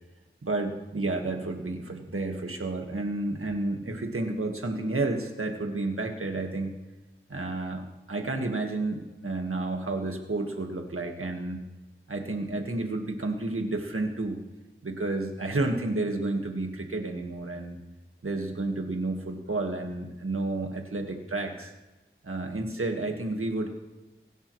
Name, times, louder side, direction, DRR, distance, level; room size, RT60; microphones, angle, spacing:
voice 1, 0.4-6.7 7.3-11.6 12.1-14.4 14.8-17.8 18.2-21.7 22.2-23.7, right 2 dB, 90° right, 3 dB, 1.7 m, -31 dB
23.5 x 11.0 x 3.2 m, 1.1 s
wide cardioid pair, 50°, 21 cm